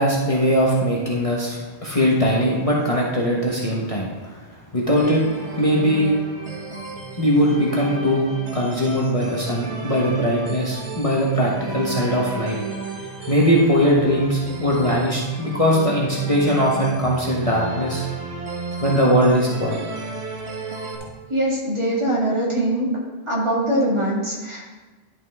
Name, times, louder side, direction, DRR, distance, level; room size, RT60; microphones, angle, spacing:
voice 1, 0.0-5.2 5.6-6.1 7.2-12.6 13.3-18.0 18.8-19.8, equal, 35° left, -4 dB, 1.2 m, -20 dB
sound 1, 5.0-21.0, right 4 dB, 85° right, 1.7 m, -33 dB
voice 2, 21.3-22.9 23.3-24.7, right 1 dB, 25° right, -5 dB, 2.1 m, -22 dB
11.0 x 5.8 x 3.5 m, 1.3 s
omnidirectional pair, 1.1 m